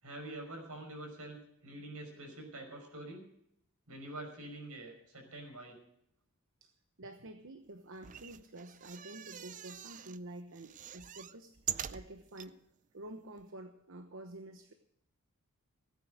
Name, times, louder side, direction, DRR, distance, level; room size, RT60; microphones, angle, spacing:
voice 1, 0.0-3.3 3.9-5.8, right 1 dB, 75° right, 3 dB, 5.5 m, -46 dB
voice 2, 7.0-11.6 11.9-12.6 12.9-14.7, right 1 dB, 60° right, 7 dB, 1.0 m, -49 dB
sound 1, 7.9-10.2 10.5-12.5 13.1-13.2 13.4-13.5, right 10 dB, 35° right, 0.4 m, -43 dB
17.0 x 9.6 x 6.5 m, 0.73 s
head